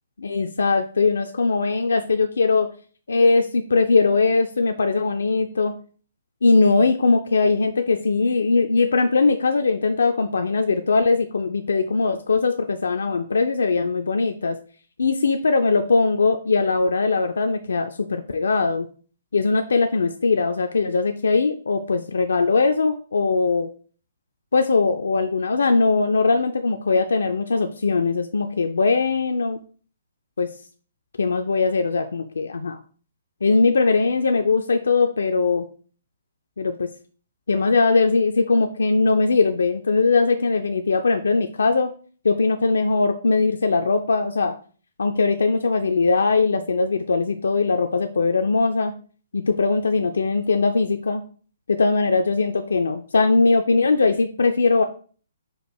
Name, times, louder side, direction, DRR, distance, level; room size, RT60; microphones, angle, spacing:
voice 1, 0.2-2.7 3.1-5.7 6.4-14.6 15.0-18.9 19.3-23.7 24.5-29.6 30.4-30.5 31.2-32.8 33.4-35.6 36.6-36.9 37.5-41.9 42.2-44.5 45.0-48.9 49.3-51.2 51.7-54.8, left 4 dB, 70° left, 6 dB, 0.3 m, -20 dB
4.5 x 2.4 x 4.5 m, 0.42 s
figure-of-eight pair, 125°, 0 cm